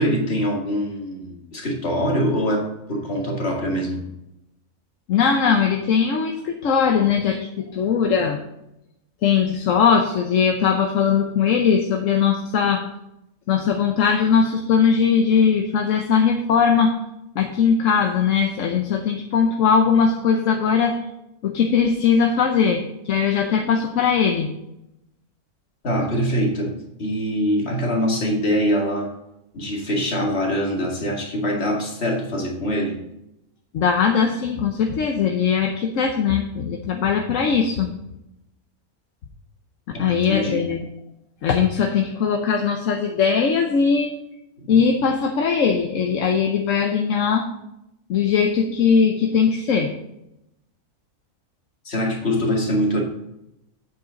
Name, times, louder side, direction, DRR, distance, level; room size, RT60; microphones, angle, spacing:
voice 1, 0.0-4.0 7.0-7.1 25.8-29.1 29.5-33.0 39.9-40.7 44.6-44.7 51.9-53.0, equal, 45° left, 0 dB, 2.1 m, -24 dB
voice 2, 5.1-8.4 9.2-12.8 13.5-16.9 17.3-20.9 21.4-24.5 33.7-37.9 40.0-40.9 41.4-44.1 44.7-47.5 48.1-49.9, left 6 dB, 65° left, 3 dB, 1.1 m, -20 dB
8.7 x 7.7 x 3.8 m, 0.85 s
omnidirectional pair, 1.6 m